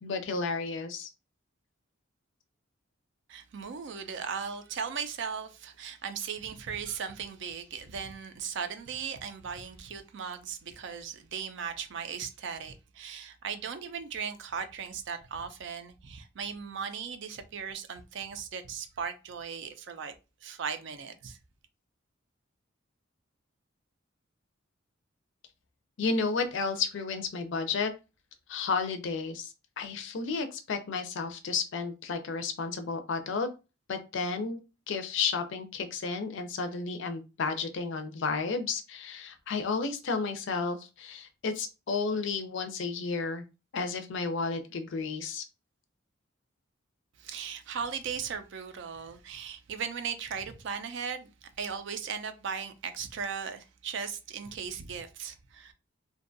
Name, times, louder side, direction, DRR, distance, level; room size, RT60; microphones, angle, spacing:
voice 1, 0.0-1.1 26.0-27.9 28.5-33.5 33.9-34.6 34.9-43.4 43.7-45.4, left 4 dB, 60° left, 0.4 m, -32 dB
voice 2, 3.3-20.1 20.4-21.4 47.2-51.3 51.6-55.7, right 6 dB, 60° right, 0.4 m, -37 dB
2.5 x 2.2 x 2.5 m
head